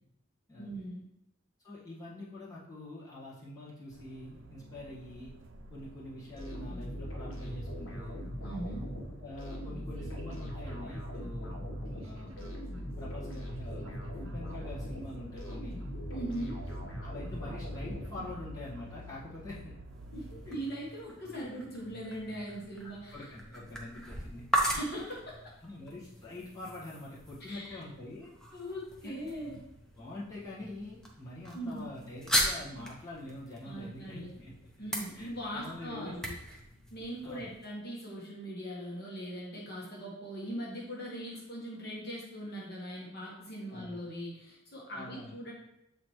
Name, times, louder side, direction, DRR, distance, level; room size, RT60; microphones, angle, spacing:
voice 1, 0.6-1.0 8.4-8.9 16.1-16.6 20.1-23.3 24.6-25.3 27.5-27.8 28.5-29.6 31.5-31.8 32.8-32.9 33.6-34.4 34.8-36.3 36.9-45.5, right 1 dB, 50° left, -4 dB, 1.3 m, -40 dB
voice 2, 1.6-5.3 5.7-8.2 9.0-11.6 11.9-12.5 13.0-15.8 17.0-19.8 20.5-20.6 22.8-24.7 25.1-25.2 25.6-28.3 29.0-29.6 29.9-34.5 35.1-36.1 37.2-37.5 43.7-44.0 44.9-45.3, left 2 dB, 20° left, -9 dB, 1.5 m, -45 dB
sound 1, 3.9-20.5, right 1 dB, 75° right, 0.6 m, -50 dB
sound 2, 6.4-18.6, equal, 70° left, 1.3 m, -40 dB
sound 3, 19.9-37.7, equal, 5° left, 0.7 m, -39 dB
7.3 x 4.1 x 3.1 m, 0.82 s
head